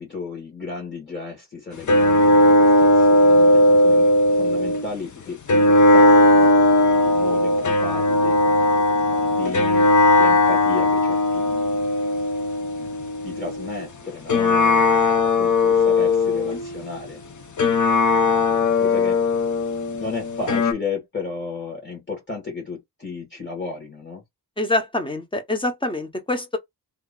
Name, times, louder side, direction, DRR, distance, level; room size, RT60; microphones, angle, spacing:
voice 1, 0.0-11.8 12.8-17.2 17.7-19.2 20.0-24.2, left 4 dB, 30° left, 1.4 m, -34 dB
sound 1, 1.9-4.9 5.5-13.9 14.3-16.8 17.6-20.7, left 2 dB, 50° left, 0.7 m, -18 dB
voice 2, 24.6-26.6, left 2 dB, 15° left, 0.8 m, -25 dB
2.9 x 2.4 x 3.7 m
wide cardioid pair, 155°, 39 cm